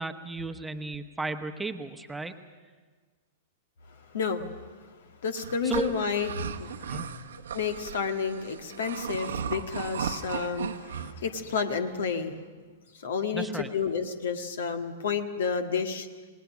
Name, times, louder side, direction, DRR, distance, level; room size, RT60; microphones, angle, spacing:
voice 1, 0.0-2.3 5.6-5.9 6.9-7.1 13.3-13.7, right 3 dB, 5° right, 6 dB, 1.2 m, -34 dB
voice 2, 4.1-4.5 5.2-7.1 7.5-12.4 13.0-16.1, left 6 dB, 65° left, 7 dB, 1.7 m, -31 dB
sound 1, 5.4-11.1, right 7 dB, 70° right, 1.2 m, -36 dB
28.5 x 19.0 x 6.2 m, 1.4 s
figure-of-eight pair, 105°, 0 cm